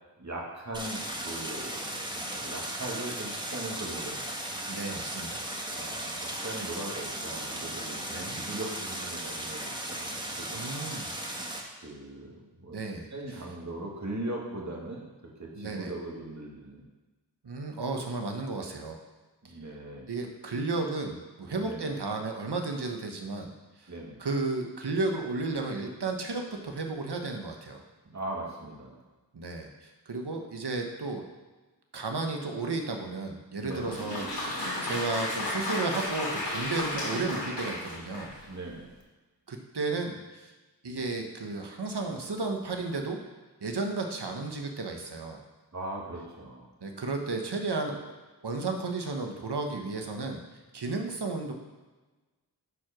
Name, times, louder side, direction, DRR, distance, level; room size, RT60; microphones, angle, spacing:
voice 1, 0.2-4.2 5.7-8.0 8.3-10.6 11.8-12.8 13.1-15.0 15.4-16.8 19.4-20.1 21.6-21.9 23.9-24.2 28.1-29.0 33.6-34.0 38.5-38.9 45.7-46.7, right 2 dB, 45° right, -3 dB, 2.1 m, -39 dB
Stream, 0.7-11.6, right 1 dB, 10° right, 1.3 m, -36 dB
voice 2, 4.7-5.5 8.1-8.4 10.5-11.1 12.7-13.1 15.6-15.9 17.4-19.0 20.1-23.5 23.8-23.9 24.2-27.8 29.3-31.3 31.9-38.3 39.5-40.5 40.8-43.2 43.6-45.4 46.8-48.0 48.4-50.4 50.7-51.5, right 3 dB, 70° right, 3 dB, 1.2 m, -33 dB
Applause, 33.7-38.5, left 1 dB, 85° left, 3.4 m, -33 dB
9.7 x 4.8 x 6.0 m, 1.2 s
wide cardioid pair, 65°, 41 cm